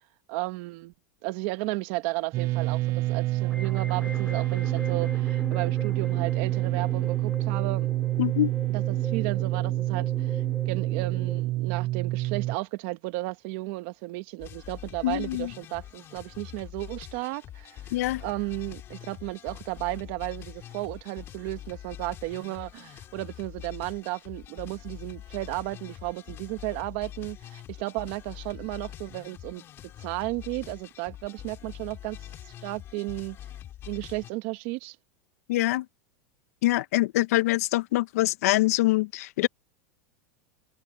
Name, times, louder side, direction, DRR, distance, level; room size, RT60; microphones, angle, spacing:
voice 1, 0.3-0.9 1.2-7.9 8.7-17.8 18.2-29.6 30.0-32.2 32.5-33.4 33.9-35.0, right 22 dB, 50° right, 1.4 m, -34 dB
sound 1, 2.3-12.6, right 17 dB, 30° right, 0.4 m, -27 dB
sound 2, 3.4-11.4, left 3 dB, 10° left, 2.3 m, -41 dB
voice 2, 8.2-8.5 15.0-15.5 17.9-18.2 35.5-35.8 36.6-39.5, left 17 dB, 70° left, 0.8 m, -24 dB
sound 3, 14.4-34.3, left 12 dB, 30° left, 4.5 m, -44 dB
supercardioid pair, 160°, 8 cm